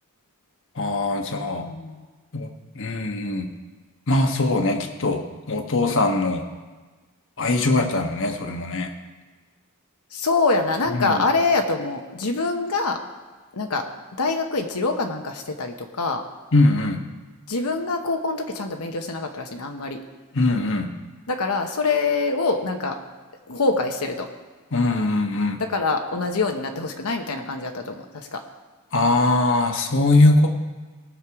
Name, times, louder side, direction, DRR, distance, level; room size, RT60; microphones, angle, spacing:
voice 1, 0.8-1.7 2.3-3.5 4.1-5.2 5.5-6.5 7.4-8.9 10.9-11.2 16.5-17.0 20.3-20.9 24.7-25.6 28.9-30.5, left 2 dB, 60° left, 4 dB, 1.2 m, -21 dB
voice 2, 1.5-2.0 10.1-13.0 13.5-13.9 14.2-16.2 17.5-20.0 21.3-23.0 23.5-24.3 25.6-28.4, left 3 dB, 80° left, 4 dB, 1.0 m, -25 dB
19.5 x 6.6 x 4.8 m, 1.3 s
head